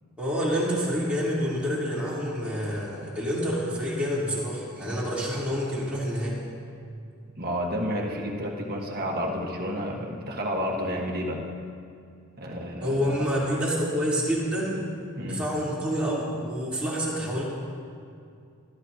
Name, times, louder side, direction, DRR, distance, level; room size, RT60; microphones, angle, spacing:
voice 1, 0.2-6.4 12.8-14.8 15.2-17.4, equal, 5° right, -9 dB, 3.5 m, -28 dB
voice 2, 7.3-11.5 12.4-13.1 15.1-15.4, equal, 45° right, 0 dB, 1.5 m, -30 dB
23.5 x 12.0 x 2.9 m, 2.4 s
head